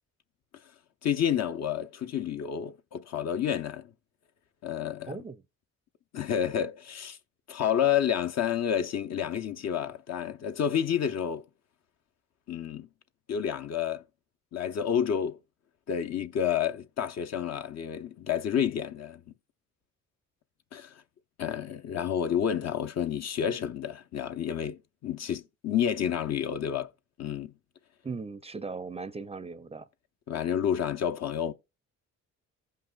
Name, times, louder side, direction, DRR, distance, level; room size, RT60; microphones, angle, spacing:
voice 1, 1.0-3.9 4.6-5.2 6.1-7.2 7.5-11.4 12.5-12.9 13.3-14.0 14.5-15.4 15.9-19.2 20.7-20.9 21.4-26.9 27.2-27.5 30.3-31.5, left 9 dB, 60° left, 0.8 m, -29 dB
voice 2, 5.1-5.4 28.0-29.9, right 4 dB, 20° right, 0.5 m, -38 dB
15.5 x 5.6 x 2.4 m
cardioid pair, 90°, 30 cm